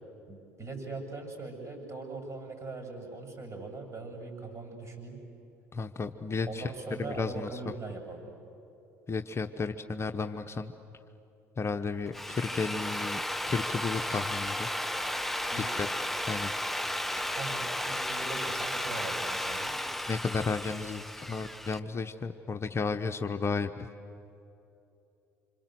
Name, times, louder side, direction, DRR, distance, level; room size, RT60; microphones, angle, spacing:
voice 1, 0.3-5.2 6.5-8.2 15.5-16.0 17.3-19.8, right 3 dB, 35° right, 4 dB, 7.9 m, -41 dB
voice 2, 5.7-6.7 7.0-7.7 9.1-10.7 11.6-13.2 13.5-14.7 15.6-15.9 16.3-16.5 17.2-17.3 20.1-23.9, left 4 dB, 30° left, 6 dB, 1.0 m, -33 dB
Drill, 12.0-21.8, left 1 dB, ahead, 0.9 m, -34 dB
28.0 x 26.0 x 8.0 m, 2.8 s
figure-of-eight pair, 55°, 9 cm